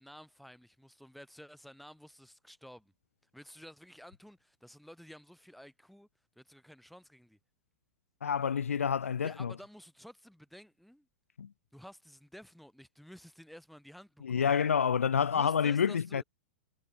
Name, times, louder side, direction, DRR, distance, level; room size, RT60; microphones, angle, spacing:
voice 1, 0.0-2.9 3.3-6.1 6.4-7.4 9.2-11.1 11.7-14.5 15.2-16.2, equal, ahead, 7.6 m, -52 dB
voice 2, 8.2-9.5 11.4-11.5 14.2-16.2, left 7 dB, 90° left, 0.8 m, -28 dB
hypercardioid pair, 110°, 7 cm